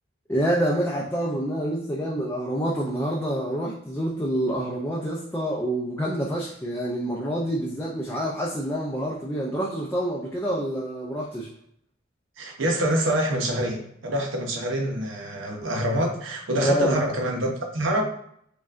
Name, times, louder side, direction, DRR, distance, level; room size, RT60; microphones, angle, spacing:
voice 1, 0.3-11.5 16.6-17.0, right 1 dB, 10° left, -4 dB, 0.4 m, -27 dB
voice 2, 12.4-18.0, right 1 dB, 80° right, 2 dB, 0.7 m, -26 dB
4.9 x 2.3 x 2.5 m, 0.69 s
head